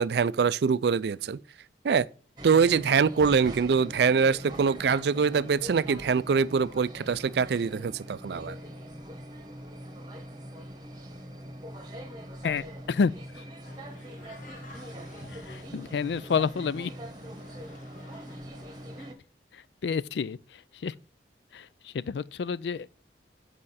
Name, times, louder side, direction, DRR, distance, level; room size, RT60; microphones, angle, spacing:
voice 1, 0.0-1.4 1.8-2.1 2.4-8.6, right 5 dB, 65° right, 0.4 m, -24 dB
sound 1, 2.4-19.1, equal, 25° right, 1.1 m, -42 dB
voice 2, 12.4-13.4 15.3-16.9 19.5-20.9 21.5-22.9, left 5 dB, 70° left, 0.4 m, -30 dB
sound 2, 13.6-19.1, left 2 dB, 45° left, 1.7 m, -52 dB
8.6 x 5.0 x 4.1 m
head